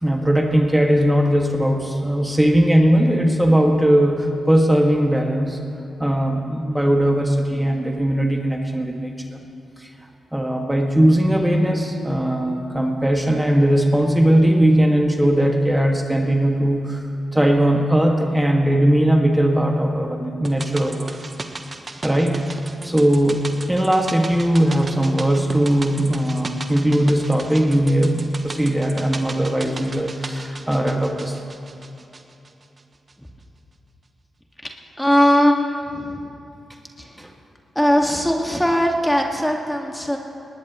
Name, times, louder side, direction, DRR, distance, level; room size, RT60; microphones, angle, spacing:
voice 1, 0.0-5.6 6.0-9.4 9.8-9.9 10.3-17.0 17.3-21.2 22.0-22.4 22.8-31.4 37.2-37.3, right 1 dB, 10° right, 2 dB, 1.9 m, -19 dB
sound 1, 20.4-32.8 33.1-33.2, right 3 dB, 45° right, 1.2 m, -36 dB
voice 2, 35.0-36.1 37.8-40.2, equal, 5° left, 1 dB, 1.9 m, -19 dB
19.5 x 19.5 x 3.1 m, 2.8 s
supercardioid pair, 40°, 0 cm